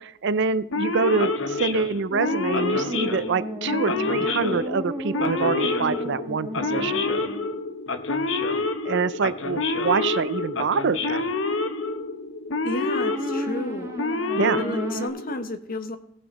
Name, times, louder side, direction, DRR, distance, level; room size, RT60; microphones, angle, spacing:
voice 1, 0.0-7.0 8.8-11.2 14.3-14.6, right 5 dB, 65° right, 15 dB, 0.5 m, -25 dB
Male speech man speaking / Siren, 0.7-15.4, left 3 dB, 70° left, 0.9 m, -28 dB
sound 1, 2.1-7.5 12.8-15.1, equal, 15° right, 1.4 m, -34 dB
voice 2, 12.6-13.9 14.6-16.0, left 1 dB, 45° left, 8 dB, 1.1 m, -31 dB
17.0 x 5.8 x 4.2 m, 0.77 s
head